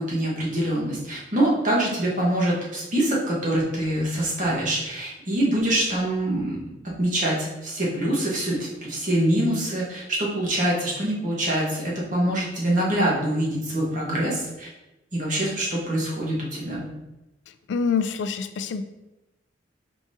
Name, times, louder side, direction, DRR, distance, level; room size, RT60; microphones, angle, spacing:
voice 1, 0.0-6.6 6.8-14.7 15.1-16.9, right 1 dB, 45° right, -5 dB, 1.2 m, -25 dB
voice 2, 17.7-18.8, left 5 dB, 75° left, 10 dB, 0.3 m, -25 dB
4.8 x 3.7 x 2.7 m, 0.97 s
head